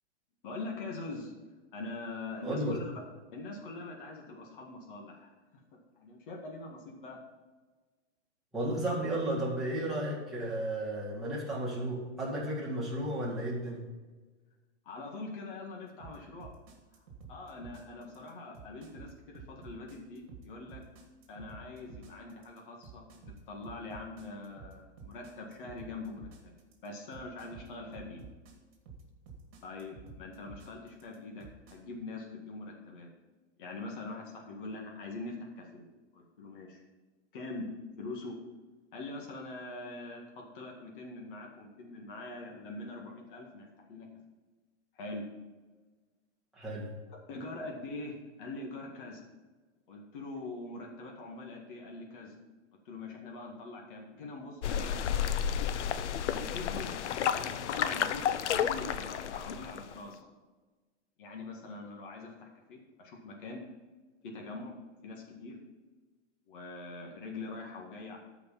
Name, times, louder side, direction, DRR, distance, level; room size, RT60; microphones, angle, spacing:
voice 1, 0.4-1.3 1.7-2.9 3.3-5.3 6.0-7.2 14.8-16.5 17.0-17.1 17.3-20.8 21.3-26.5 26.8-28.2 29.6-33.1 33.6-35.9 36.1-36.8 37.3-37.7 38.0-38.4 38.9-44.1 44.9-45.2 47.3-49.2 49.9-52.3 52.9-55.2 56.3-57.1 57.3-58.2 58.5-60.3 61.2-63.6 64.2-64.7 65.0-65.6 66.5-68.2, left 2 dB, 45° left, 0 dB, 1.9 m, -43 dB
voice 2, 2.4-2.8 8.5-13.8 46.5-46.9, right 1 dB, ahead, -8 dB, 2.0 m, -33 dB
sound 1, 16.0-31.8, right 5 dB, 40° right, 2.3 m, -50 dB
sound 2, 54.6-59.9, left 9 dB, 80° left, 0.7 m, -31 dB
13.0 x 5.1 x 5.7 m, 1.3 s
supercardioid pair, 175°, 35 cm